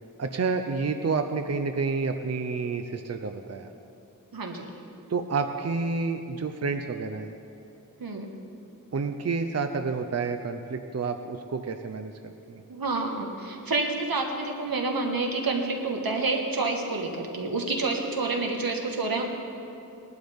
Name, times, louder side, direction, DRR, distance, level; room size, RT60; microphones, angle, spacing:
voice 1, 0.2-3.7 5.1-7.3 8.9-12.1 12.5-12.6, right 4 dB, 45° right, 7 dB, 0.6 m, -29 dB
voice 2, 4.3-4.7 8.0-8.3 12.7-19.2, right 3 dB, 85° right, 2 dB, 1.6 m, -28 dB
19.5 x 11.5 x 3.6 m, 2.8 s
wide cardioid pair, 85°, 34 cm